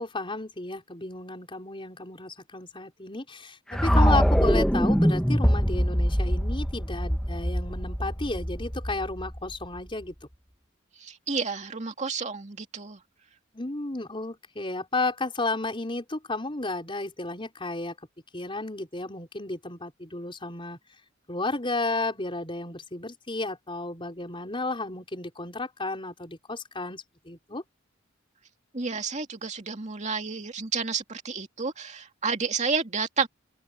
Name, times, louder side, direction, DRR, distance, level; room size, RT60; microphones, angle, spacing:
voice 1, 0.0-10.1 13.5-17.9 18.3-20.8 21.3-27.6, left 2 dB, 25° left, 5.0 m, -32 dB
sound 1, 3.7-9.8, equal, 5° left, 1.6 m, -24 dB
voice 2, 11.0-13.0 28.7-33.3, right 5 dB, 35° right, 2.4 m, -30 dB
open air
head